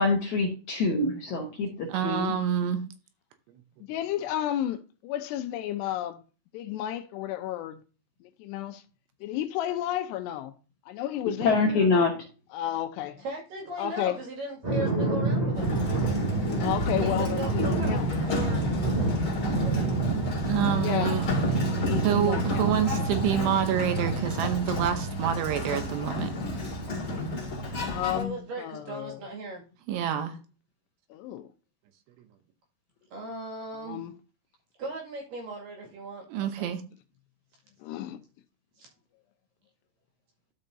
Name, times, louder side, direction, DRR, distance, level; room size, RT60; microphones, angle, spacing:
voice 1, 0.0-2.3 11.4-12.2, left 3 dB, 65° left, 2.0 m, -25 dB
voice 2, 1.9-2.8 20.4-21.3 22.0-26.3 29.9-30.4 32.2-32.3 36.3-36.8, right 9 dB, 80° right, 3.0 m, -27 dB
voice 3, 3.9-6.2 6.5-7.8 8.2-8.8 9.2-10.5 10.9-11.9 12.5-13.2 13.8-14.2 16.6-18.1 20.8-21.1 21.7-23.1 27.9-29.2 31.1-31.5 33.8-34.1 37.8-38.2, left 12 dB, 85° left, 2.8 m, -32 dB
voice 4, 13.2-15.8 17.0-19.9 22.1-22.4 28.1-29.6 33.1-34.0 34.8-36.7 38.8-38.9, right 2 dB, 60° right, 3.5 m, -38 dB
sound 1, 14.6-24.6, right 3 dB, 25° right, 0.8 m, -29 dB
Sliding door, 15.5-28.2, equal, 25° left, 1.8 m, -30 dB
12.5 x 5.4 x 2.7 m
omnidirectional pair, 4.9 m